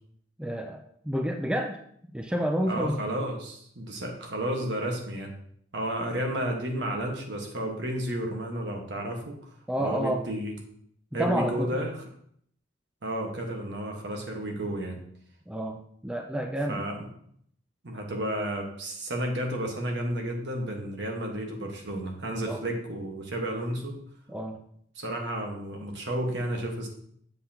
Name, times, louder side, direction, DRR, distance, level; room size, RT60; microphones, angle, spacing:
voice 1, 0.4-1.8 2.1-3.0 9.7-10.2 11.1-11.7 15.5-16.8 22.5-22.6 24.3-24.6, equal, 5° right, 4 dB, 0.4 m, -29 dB
voice 2, 2.7-5.4 5.7-9.5 9.8-10.5 11.1-12.0 13.0-15.0 16.7-17.1 17.8-24.0 25.0-26.9, right 1 dB, 65° right, 2 dB, 1.4 m, -32 dB
7.6 x 6.8 x 2.8 m, 0.66 s
head